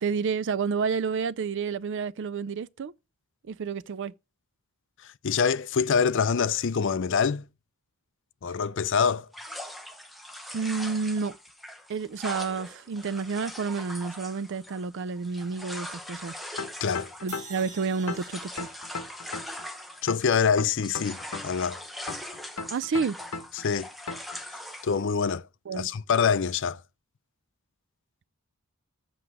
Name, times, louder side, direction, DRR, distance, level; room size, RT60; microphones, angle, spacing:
voice 1, 0.0-2.9 3.5-4.1 10.5-11.4 11.9-16.3 17.2-18.7 22.7-23.2 25.7-25.9, right 5 dB, 55° right, 0.4 m, -30 dB
voice 2, 5.2-7.4 8.4-9.3 16.8-17.1 20.0-21.8 23.6-23.9 24.8-25.5 25.7-26.8, left 6 dB, 55° left, 0.5 m, -25 dB
sound 1, 9.3-20.4 20.7-25.0, left 1 dB, ahead, 0.8 m, -41 dB
sound 2, 16.6-17.7 18.1-19.6 20.1-21.6 22.1-23.6 24.1-24.4, left 4 dB, 85° left, 0.9 m, -36 dB
sound 3, 17.3-20.5, right 4 dB, 35° right, 1.8 m, -48 dB
7.7 x 6.5 x 6.1 m
head